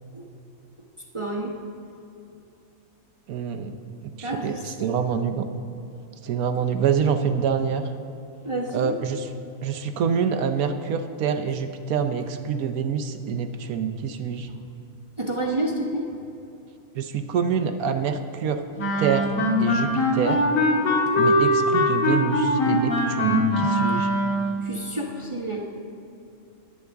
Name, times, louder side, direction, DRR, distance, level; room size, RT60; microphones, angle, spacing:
voice 1, 1.1-1.6 4.2-5.0 8.4-9.0 14.5-14.6 15.2-16.2 24.6-25.6, right 1 dB, 25° right, -2 dB, 0.9 m, -29 dB
voice 2, 3.3-5.5 6.2-7.8 8.7-9.3 9.6-14.5 17.0-18.6 19.0-19.3 19.6-20.4 21.2-24.1, right 7 dB, 75° right, 8 dB, 1.2 m, -26 dB
Wind instrument woodwind instrument, 18.8-24.5, left 1 dB, 65° left, 1.9 m, -22 dB
20.0 x 8.4 x 3.5 m, 2.7 s
omnidirectional pair, 1.6 m